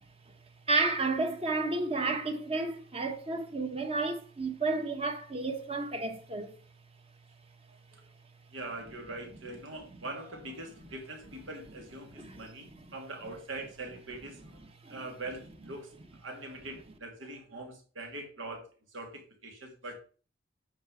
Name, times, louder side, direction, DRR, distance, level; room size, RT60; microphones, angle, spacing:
voice 1, 0.7-6.5 9.9-10.0 12.1-12.4 12.7-12.9 14.8-15.0, right 3 dB, 30° right, 1.1 m, -32 dB
voice 2, 8.5-14.6 14.9-15.9 16.2-18.6 18.9-19.9, right 2 dB, 85° right, 2.7 m, -42 dB
9.3 x 4.8 x 4.9 m
head